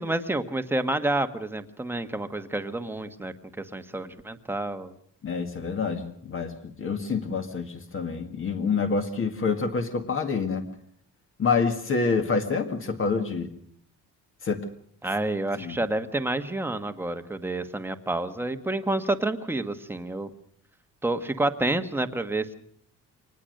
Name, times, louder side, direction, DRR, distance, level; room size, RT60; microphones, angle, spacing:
voice 1, 0.0-4.9 15.0-20.3 21.0-22.5, right 2 dB, 5° right, 8 dB, 1.3 m, -29 dB
voice 2, 5.2-10.6 11.4-13.5 14.4-14.6 15.6-15.8, left 5 dB, 35° left, 6 dB, 2.0 m, -27 dB
24.5 x 19.5 x 6.6 m, 0.62 s
cardioid pair, 150°, 34 cm